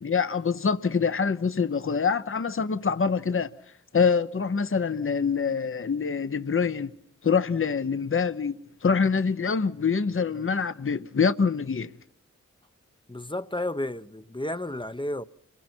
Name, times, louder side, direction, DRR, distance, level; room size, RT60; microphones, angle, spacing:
voice 1, 0.0-3.5 3.9-6.9 7.2-8.5 8.8-11.9, left 5 dB, 40° left, 0.9 m, -25 dB
voice 2, 13.1-15.2, left 1 dB, 15° left, 0.8 m, -32 dB
29.5 x 22.5 x 4.5 m
cardioid pair, 40°, 32 cm